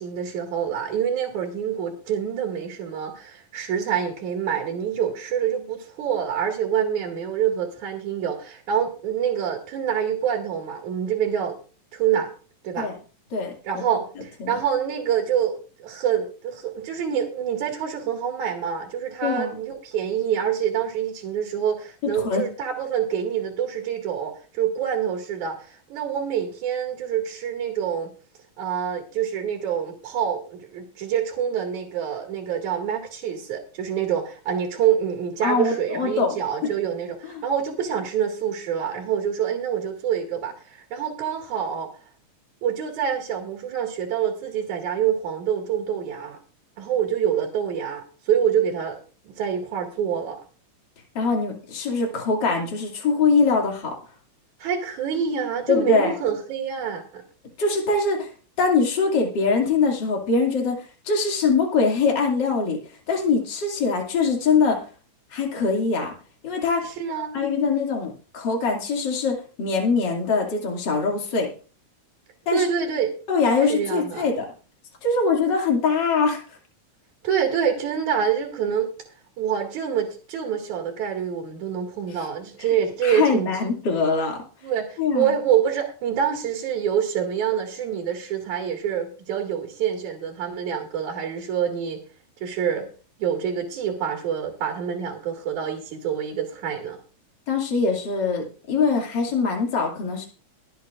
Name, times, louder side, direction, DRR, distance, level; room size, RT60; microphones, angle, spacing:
voice 1, 0.0-11.6 11.9-12.3 12.6-12.9 13.6-25.6 25.9-28.1 28.6-41.9 42.6-46.4 46.8-49.0 49.3-50.4 54.6-57.2 67.0-67.4 72.5-73.1 73.7-74.3 77.2-78.9 79.4-83.5 84.6-92.0 92.4-92.9 93.2-97.0, right 8 dB, 70° right, 1 dB, 3.5 m, -26 dB
voice 2, 13.3-13.8 14.4-14.6 19.2-19.6 22.0-22.4 35.4-36.4 36.6-36.7 37.3-37.5 51.1-53.9 55.7-56.1 57.6-58.3 58.6-62.8 63.1-64.8 65.3-66.1 66.4-66.9 67.3-71.5 72.5-72.6 73.3-74.5 75.0-76.6 82.6-82.7 83.0-84.4 85.0-85.3 97.5-100.3, left 4 dB, 35° left, 0 dB, 2.8 m, -23 dB
23.0 x 8.3 x 2.5 m, 0.37 s
omnidirectional pair, 3.6 m